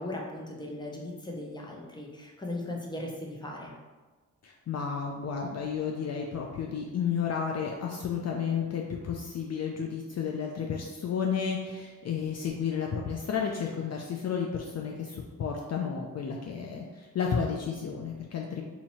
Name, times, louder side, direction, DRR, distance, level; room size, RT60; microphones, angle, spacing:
voice 1, 0.0-3.7, left 1 dB, 15° left, -1 dB, 0.7 m, -38 dB
voice 2, 4.4-18.6, left 6 dB, 50° left, 0 dB, 0.5 m, -32 dB
2.8 x 2.8 x 4.2 m, 1.3 s
cardioid pair, 80°, 33 cm